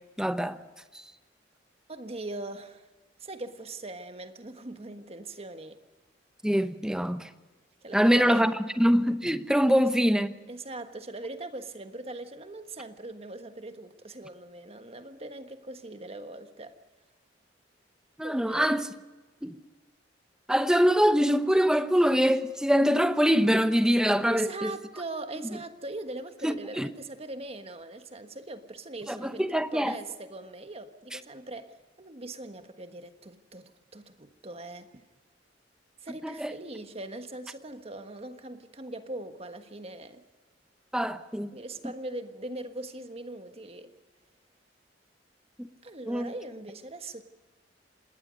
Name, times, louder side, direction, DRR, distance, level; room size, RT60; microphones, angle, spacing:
voice 1, 0.2-0.6 6.4-7.3 7.9-10.3 18.2-18.9 19.4-19.5 20.5-24.7 26.4-26.9 29.1-29.9 36.2-36.5 40.9-41.5 45.6-45.7 46.1-46.3, equal, 5° right, 0.8 m, -24 dB
voice 2, 1.9-2.9 3.2-5.8 7.8-8.5 9.7-9.8 10.5-16.8 18.2-18.8 24.2-35.0 36.0-40.2 41.5-43.9 45.8-47.2, right 2 dB, 35° right, 1.4 m, -41 dB
27.0 x 20.0 x 5.3 m
head